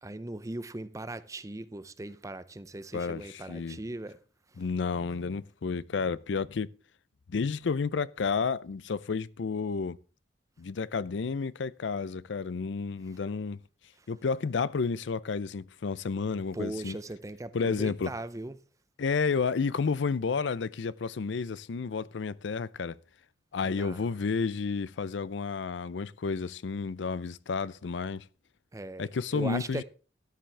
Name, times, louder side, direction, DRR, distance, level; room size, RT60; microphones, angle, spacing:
voice 1, 0.0-4.2 14.0-14.1 16.5-18.6 23.6-24.0 28.7-29.8, right 2 dB, 20° right, 0.5 m, -39 dB
voice 2, 2.9-3.8 4.6-6.7 7.3-10.0 10.6-13.6 14.1-17.0 17.5-18.1 19.0-22.9 23.5-28.2 29.0-29.8, left 5 dB, 90° left, 0.5 m, -31 dB
13.5 x 10.5 x 3.3 m
head